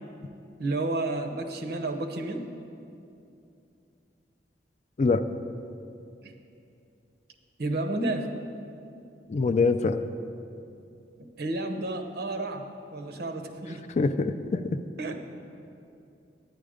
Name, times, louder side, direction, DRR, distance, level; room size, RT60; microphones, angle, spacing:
voice 1, 0.6-2.5 6.2-6.3 7.6-8.3 11.2-13.8 15.0-15.1, right 2 dB, 60° right, 5 dB, 0.8 m, -31 dB
voice 2, 9.3-10.0 14.0-14.8, left 3 dB, 40° left, 10 dB, 0.4 m, -24 dB
11.0 x 9.3 x 5.1 m, 2.7 s
head